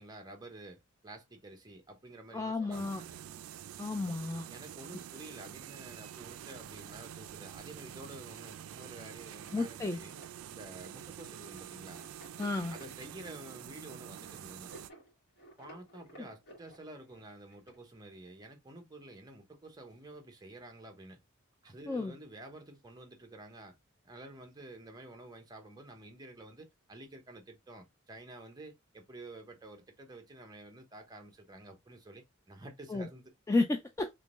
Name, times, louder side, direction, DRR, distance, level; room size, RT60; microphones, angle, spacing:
voice 1, 0.0-3.3 4.5-10.2 10.5-12.1 12.7-14.7 15.6-21.2 21.6-23.8 24.0-33.3, right 1 dB, 20° right, 0.8 m, -50 dB
voice 2, 2.3-3.0 3.8-4.5 9.5-10.0 12.4-12.7 21.9-22.1 32.9-33.1 33.5-34.1, left 2 dB, 15° left, 0.3 m, -32 dB
sound 1, 2.7-14.9, right 10 dB, 80° right, 0.3 m, -47 dB
sound 2, 9.2-17.8, equal, 55° left, 1.8 m, -56 dB
3.6 x 3.0 x 2.4 m
head